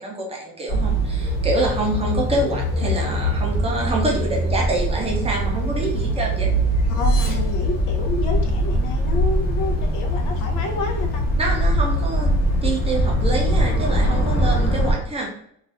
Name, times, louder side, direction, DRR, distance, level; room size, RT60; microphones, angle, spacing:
voice 1, 0.0-6.5 11.4-12.3 12.6-15.3, right 2 dB, 20° right, -1 dB, 0.5 m, -26 dB
sound 1, 0.7-14.9, equal, 55° left, 1.0 m, -22 dB
sound 2, 6.8-8.7, left 3 dB, 35° left, 0.6 m, -38 dB
voice 2, 6.9-11.2, left 2 dB, 70° left, 3 dB, 0.7 m, -29 dB
2.6 x 2.3 x 3.4 m, 0.68 s
cardioid pair, 170°, 31 cm